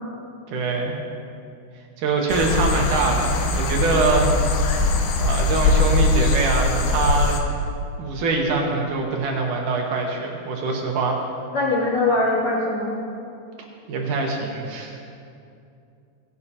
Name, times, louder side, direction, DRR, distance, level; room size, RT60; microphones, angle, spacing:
voice 1, 0.5-1.0 2.0-4.3 5.2-7.4 8.0-11.2 13.9-15.0, right 3 dB, 70° right, 0 dB, 2.0 m, -24 dB
sound 1, 2.3-7.4, left 2 dB, 80° left, 3.1 m, -21 dB
voice 2, 11.5-12.9, left 2 dB, 35° left, -7 dB, 3.1 m, -21 dB
18.0 x 11.5 x 2.9 m, 2.5 s
omnidirectional pair, 4.9 m